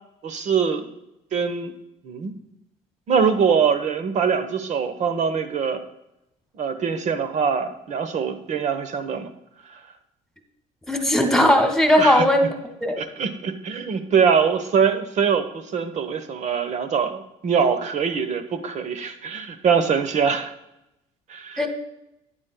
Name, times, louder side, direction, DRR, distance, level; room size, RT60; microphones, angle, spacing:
voice 1, 0.2-0.9 1.3-1.7 2.0-2.3 3.1-5.8 6.5-9.3 9.7-9.8 12.0-12.2 13.0-20.5 21.3-21.7, right 6 dB, 45° right, 9 dB, 1.0 m, -23 dB
voice 2, 10.9-12.5 12.8-13.0 21.6-21.7, left 1 dB, 5° left, 5 dB, 1.6 m, -18 dB
11.5 x 8.9 x 2.2 m, 0.87 s
supercardioid pair, 85°, 16 cm